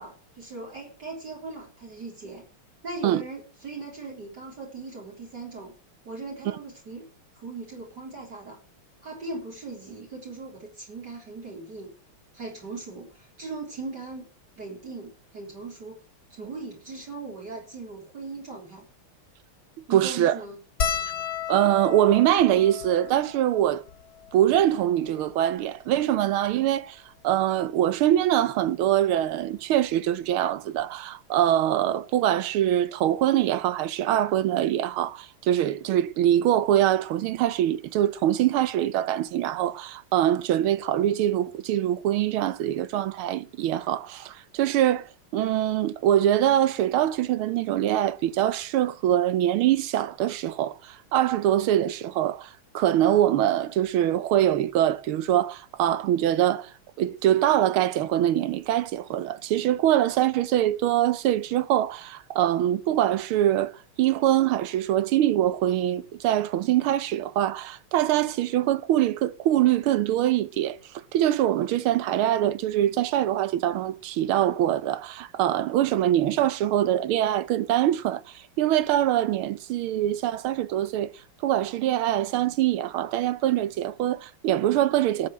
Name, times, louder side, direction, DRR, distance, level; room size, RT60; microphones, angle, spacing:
voice 1, 0.0-2.5 2.8-5.7 6.0-7.1 7.3-8.6 9.0-11.9 12.3-14.2 14.6-16.0 16.3-18.9 19.9-20.6, right 3 dB, 50° right, 4.4 m, -39 dB
voice 2, 19.9-20.4 21.5-23.8 24.3-45.0 45.3-56.7 57.0-63.7 64.0-70.8 71.1-81.1 81.4-85.3, right 12 dB, 75° right, 1.7 m, -23 dB
sound 1, 20.8-25.4 26.1-26.2 26.4-26.6 27.9-28.1 29.6-29.7 29.9-30.1, left 8 dB, 50° left, 1.8 m, -34 dB
13.0 x 7.6 x 8.9 m
omnidirectional pair, 2.4 m